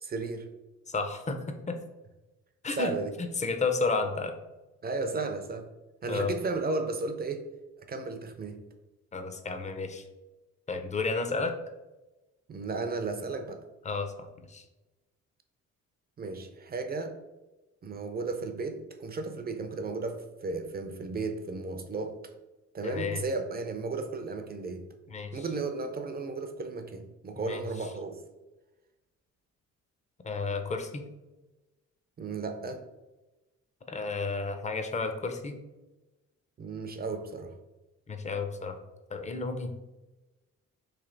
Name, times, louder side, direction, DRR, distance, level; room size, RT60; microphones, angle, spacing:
voice 1, 0.0-0.5 2.8-3.1 4.8-5.7 6.0-7.5 7.9-8.6 12.5-13.6 16.2-17.2 17.8-22.2 22.7-24.9 25.3-28.2 32.2-32.8 36.6-37.5, right 3 dB, 30° right, 6 dB, 0.5 m, -34 dB
voice 2, 0.9-1.4 1.7-1.8 2.6-2.9 3.2-4.3 6.1-6.3 9.1-10.0 10.7-11.5 13.8-14.6 22.8-23.2 25.1-25.4 27.4-27.6 30.2-31.0 33.9-35.6 38.1-38.8 39.1-39.8, left 4 dB, 25° left, 6 dB, 0.5 m, -32 dB
3.3 x 2.7 x 3.8 m, 1.0 s
cardioid pair, 90°, 30 cm